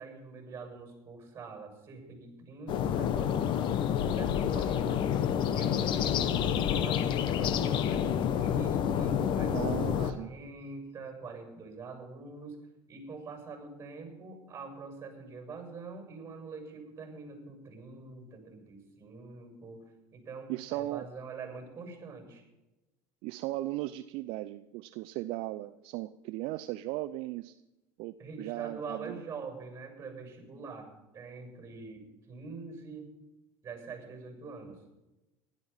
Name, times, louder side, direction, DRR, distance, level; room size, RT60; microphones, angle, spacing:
voice 1, 0.0-5.1 5.4-8.1 8.4-12.6 12.9-19.8 20.1-22.4 28.2-33.1 33.6-34.8, right 4 dB, 25° right, 4 dB, 6.8 m, -44 dB
sound 1, 2.7-10.1, left 9 dB, 50° left, 1.1 m, -28 dB
voice 2, 9.5-10.3 20.5-21.1 23.2-27.6 28.0-29.2, right 17 dB, 65° right, 11 dB, 0.6 m, -37 dB
15.5 x 12.0 x 5.7 m, 1.0 s
supercardioid pair, 115°, 10 cm